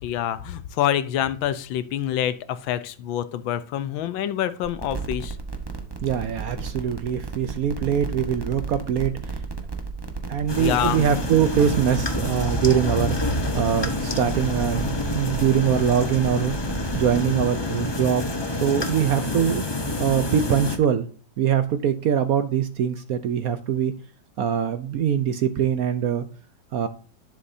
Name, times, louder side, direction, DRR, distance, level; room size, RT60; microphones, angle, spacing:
voice 1, 0.0-5.4 10.6-11.0, left 11 dB, 85° left, 14 dB, 1.5 m, -26 dB
sound 1, 4.6-17.1, right 4 dB, 20° right, 0.7 m, -34 dB
voice 2, 6.0-9.1 10.3-13.2 13.5-16.5 16.9-18.2 18.5-19.6 20.0-21.1 21.4-23.9 24.4-26.3 26.7-26.9, right 9 dB, 65° right, 10 dB, 0.9 m, -23 dB
sound 2, 10.5-20.8, left 2 dB, 35° left, 0.4 m, -28 dB
11.0 x 6.9 x 2.7 m, 0.41 s
omnidirectional pair, 2.1 m